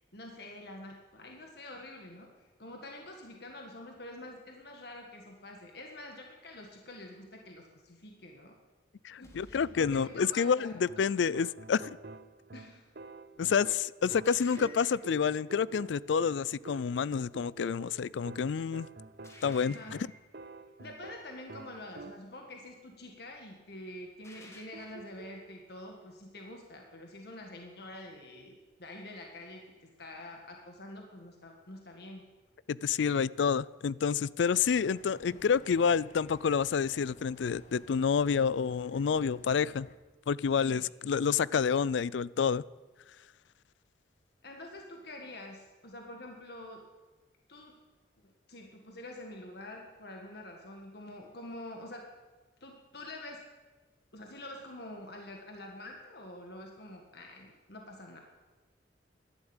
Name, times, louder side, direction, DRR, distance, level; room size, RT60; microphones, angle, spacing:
voice 1, 0.0-8.6 9.2-10.8 12.5-12.8 19.7-19.9 20.8-32.3 35.3-35.4 40.5-40.8 44.4-46.9 47.5-47.8 48.2-52.1 52.6-53.5 54.1-58.2, left 1 dB, 60° left, 2 dB, 1.8 m, -47 dB
voice 2, 9.0-12.0 13.4-18.9 19.4-20.1 32.7-39.9 40.3-42.6, left 6 dB, 75° left, 21 dB, 0.4 m, -29 dB
sound 1, 9.2-10.9 14.2-15.4 19.2-20.4 24.2-25.2, left 1 dB, 15° left, 1.8 m, -54 dB
sound 2, 10.9-22.5 24.7-25.6, right 3 dB, 55° right, 0.7 m, -49 dB
sound 3, 34.5-40.0, left 1 dB, 40° left, 1.3 m, -55 dB
12.0 x 11.5 x 8.9 m, 1.3 s
head